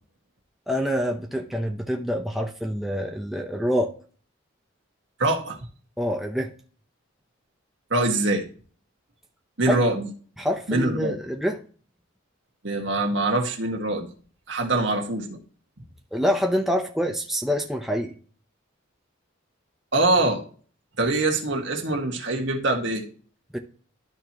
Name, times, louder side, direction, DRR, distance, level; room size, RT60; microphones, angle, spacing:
voice 1, 0.7-3.9 6.0-6.5 9.7-9.8 10.4-11.6 16.1-18.1 23.5-23.6, equal, ahead, 2 dB, 0.7 m, -26 dB
voice 2, 5.2-5.6 7.9-8.4 9.6-10.1 10.7-11.2 12.6-14.1 14.5-15.4 19.9-20.4 21.0-23.1, right 2 dB, 60° right, 2 dB, 1.7 m, -24 dB
12.5 x 4.5 x 3.0 m, 0.41 s
head